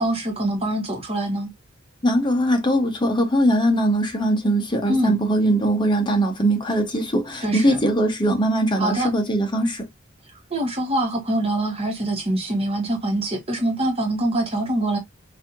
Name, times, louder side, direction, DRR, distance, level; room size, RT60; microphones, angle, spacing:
voice 1, 0.0-1.5 4.9-5.2 7.4-7.8 8.8-9.1 10.5-15.0, right 1 dB, 30° right, 1.2 m, -24 dB
voice 2, 2.0-9.8, right 1 dB, 25° left, 0.8 m, -21 dB
4.2 x 2.7 x 2.5 m
head